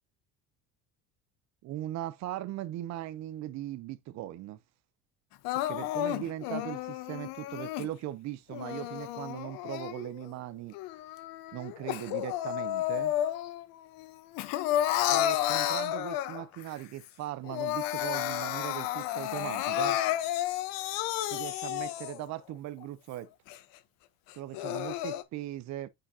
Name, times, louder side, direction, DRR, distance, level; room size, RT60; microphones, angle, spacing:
voice 1, 1.6-4.6 5.5-10.8 11.5-13.1 15.0-20.0 21.3-23.3 24.4-25.9, right 14 dB, 55° right, 0.6 m, -39 dB
Crying sobbing, 5.4-7.9 8.5-10.3 10.7-13.7 14.0-16.6 17.1-17.2 17.4-22.3 22.8-22.9 23.5-23.6 24.3-25.2, left 13 dB, 75° left, 1.0 m, -32 dB
8.7 x 4.9 x 2.7 m
supercardioid pair, 105°, 34 cm